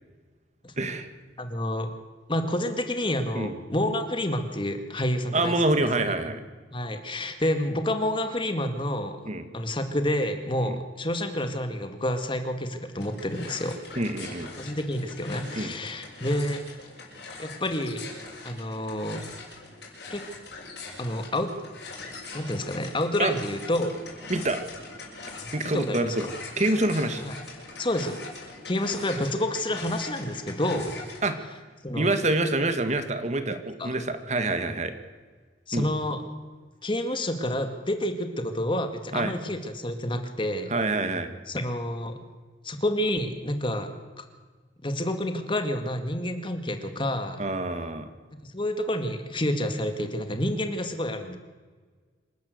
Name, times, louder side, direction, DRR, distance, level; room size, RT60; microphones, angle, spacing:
voice 1, 0.8-1.1 3.3-3.5 5.3-6.4 9.2-9.5 10.6-10.8 13.9-14.5 15.5-15.7 23.2-23.3 24.3-24.6 25.5-26.3 26.6-27.2 31.2-31.4 31.9-34.9 35.7-35.9 39.1-39.3 40.7-41.3 47.4-48.1, right 2 dB, 40° right, 9 dB, 1.8 m, -26 dB
voice 2, 1.4-1.9 2.3-5.9 6.7-9.2 9.5-13.8 14.6-16.6 17.4-18.1 18.4-19.3 20.1-20.3 21.0-21.5 22.3-24.0 25.6-26.2 27.2-27.4 27.8-28.2 28.7-31.0 31.8-32.1 33.8-33.9 35.7-36.2 36.8-40.7 41.5-42.2 42.6-44.2 44.8-47.4 48.5-51.4, left 1 dB, 25° left, 7 dB, 2.1 m, -29 dB
sound 1, 12.9-31.3, left 3 dB, 60° left, 6.5 m, -42 dB
27.0 x 12.0 x 8.0 m, 1.4 s
head